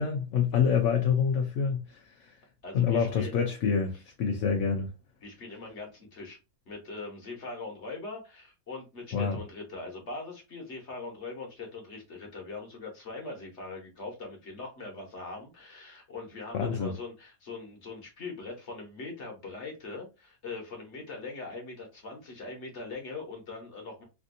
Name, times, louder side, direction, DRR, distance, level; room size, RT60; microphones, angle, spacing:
voice 1, 0.0-2.4 2.7-4.9 9.1-9.4 16.5-16.9, left 6 dB, 70° left, 0.7 m, -27 dB
voice 2, 2.6-3.4 5.2-6.4 6.7-24.0, left 3 dB, 50° left, 1.2 m, -41 dB
3.3 x 2.6 x 2.6 m
omnidirectional pair, 1.7 m